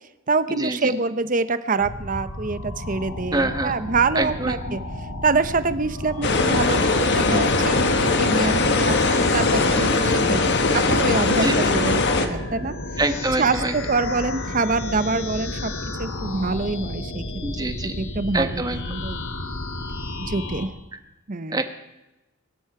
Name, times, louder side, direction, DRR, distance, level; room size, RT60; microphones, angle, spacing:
voice 1, 0.3-4.8 5.2-12.7 13.4-15.7 16.0-17.2 17.6-19.2 20.2-20.7 21.3-21.6, right 3 dB, 40° right, 13 dB, 0.8 m, -25 dB
sound 1, 1.8-20.7, left 2 dB, 70° left, 2.4 m, -32 dB
voice 2, 3.3-3.7 4.1-4.8 11.3-11.6 13.0-13.7 17.4-17.9 18.3-18.8 21.5-21.6, right 2 dB, 20° right, 8 dB, 1.2 m, -25 dB
sound 2, 6.2-12.3, left 3 dB, 55° left, 1.5 m, -20 dB
23.0 x 12.5 x 4.9 m, 0.99 s
head